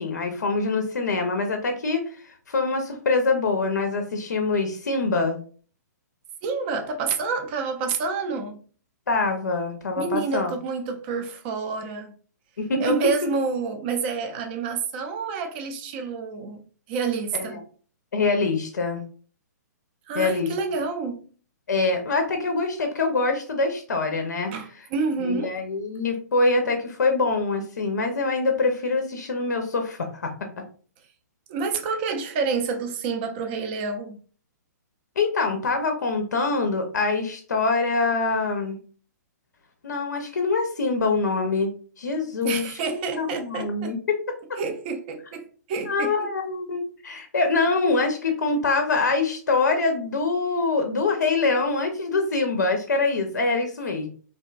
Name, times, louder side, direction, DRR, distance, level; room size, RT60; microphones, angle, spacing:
voice 1, 0.0-5.4 9.1-10.5 12.6-12.9 17.3-17.6 18.1-19.0 20.1-20.5 21.7-24.5 25.2-30.3 35.2-38.8 39.8-44.2 45.9-54.1, left 3 dB, 75° left, 0.5 m, -24 dB
voice 2, 6.4-8.6 10.0-12.1 12.8-16.6 16.9-17.6 20.1-21.2 24.5-25.5 31.5-34.2 42.4-43.9 44.6-46.3, right 4 dB, 35° right, 0.4 m, -28 dB
2.6 x 2.2 x 2.3 m
figure-of-eight pair, 120°, 10 cm